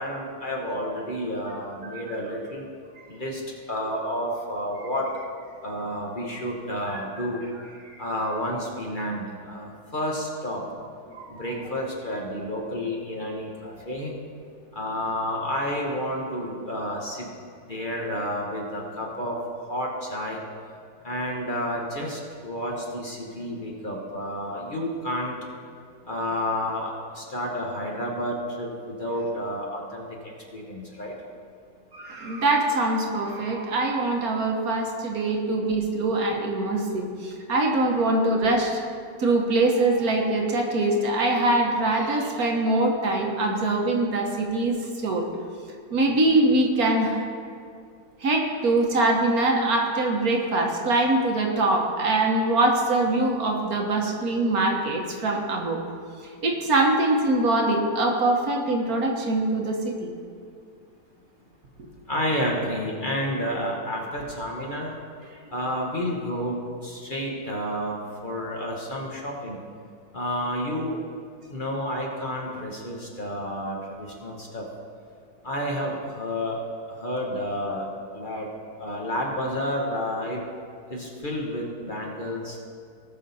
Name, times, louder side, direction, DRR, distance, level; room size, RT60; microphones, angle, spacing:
voice 1, 0.0-2.6 3.1-3.4 3.7-5.1 5.6-7.4 8.0-10.6 11.3-14.1 14.7-17.3 17.7-19.4 19.7-20.4 21.0-25.4 26.1-31.1 62.1-64.9 65.5-66.6 66.8-69.6 70.1-71.0 71.5-74.6 75.4-77.9 78.1-78.5 78.8-80.4 80.9-82.6, equal, 35° left, -2 dB, 1.4 m, -30 dB
voice 2, 11.1-11.4 31.9-38.8 39.2-44.8 45.0-45.3 45.9-47.2 48.2-55.8 56.4-60.1, right 2 dB, 65° right, 1 dB, 1.7 m, -23 dB
18.5 x 6.5 x 4.2 m, 2.3 s
omnidirectional pair, 1.7 m